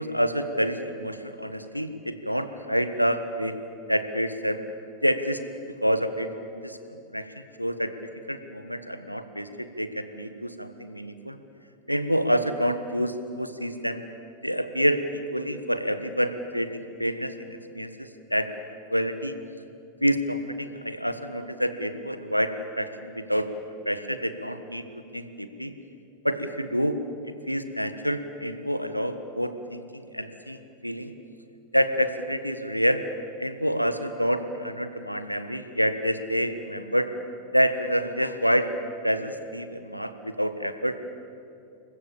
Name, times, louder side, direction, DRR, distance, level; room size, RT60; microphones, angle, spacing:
voice 1, 0.0-3.6 3.9-4.6 5.0-5.4 5.8-6.3 6.5-7.9 8.3-11.4 11.9-14.0 14.4-15.0 15.3-18.5 18.9-19.4 20.0-23.5 23.8-24.8 25.1-25.7 26.2-27.0 27.5-31.1 31.7-33.0 33.4-37.1 37.5-38.7 39.0-40.9, equal, 90° right, 10 dB, 1.5 m, -27 dB
29.0 x 23.0 x 7.1 m, 2.7 s
figure-of-eight pair, 90°, 0 cm